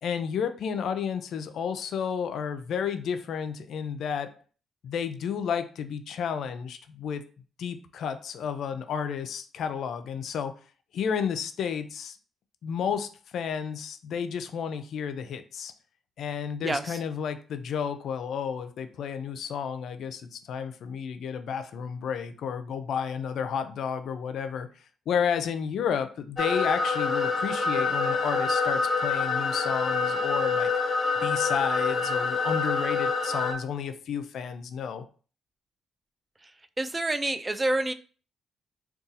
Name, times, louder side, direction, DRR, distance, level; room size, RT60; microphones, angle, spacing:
voice 1, 0.0-4.3 4.8-7.2 7.6-10.5 10.9-12.2 12.6-15.7 16.2-24.7 25.1-30.7 31.2-35.0, left 7 dB, 70° left, 10 dB, 0.4 m, -31 dB
voice 2, 16.6-17.0 36.8-37.9, right 2 dB, 20° right, 9 dB, 0.3 m, -27 dB
sound 1, 26.4-33.5, left 4 dB, 30° left, 0.9 m, -26 dB
2.6 x 2.3 x 3.9 m, 0.39 s
cardioid pair, 90°, 0 cm